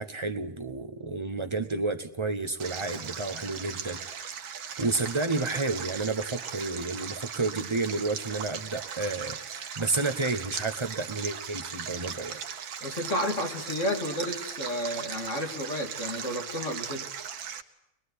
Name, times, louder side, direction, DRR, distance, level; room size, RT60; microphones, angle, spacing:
voice 1, 0.0-12.4, right 3 dB, 30° right, 6 dB, 0.5 m, -31 dB
Stream, 2.6-17.6, right 7 dB, 70° right, 2.0 m, -38 dB
voice 2, 12.8-17.1, left 1 dB, 35° left, 3 dB, 2.7 m, -31 dB
22.5 x 21.5 x 9.9 m, 0.84 s
omnidirectional pair, 2.3 m